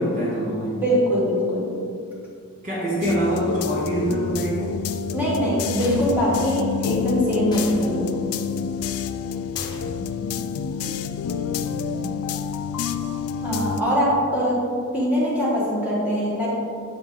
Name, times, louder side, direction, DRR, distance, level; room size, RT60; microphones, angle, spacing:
voice 1, 0.0-0.8 2.6-4.8, right 1 dB, 35° right, -5 dB, 0.9 m, -25 dB
voice 2, 0.7-1.7 5.1-8.2 13.4-16.5, equal, 5° right, -7 dB, 1.5 m, -22 dB
sound 1, 3.0-13.8, left 6 dB, 75° left, 0.3 m, -28 dB
sound 2, 5.8-6.3 7.5-7.8 9.5-10.0, left 1 dB, 20° left, 1.0 m, -37 dB
7.6 x 4.3 x 3.7 m, 2.3 s
head